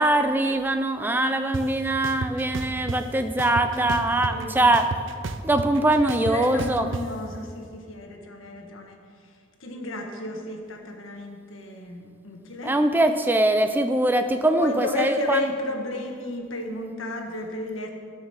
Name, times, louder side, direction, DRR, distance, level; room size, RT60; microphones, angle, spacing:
voice 1, 0.0-4.8 5.4-6.8 12.6-15.4, right 1 dB, 10° right, 8 dB, 0.4 m, -22 dB
sound 1, 1.5-1.6 2.0-3.0 3.4-4.4 4.7-7.0, right 3 dB, 70° right, 0.6 m, -31 dB
voice 2, 3.6-4.6 6.0-12.8 14.1-17.9, left 2 dB, 80° left, 2 dB, 1.5 m, -33 dB
13.0 x 6.3 x 6.3 m, 2.2 s
head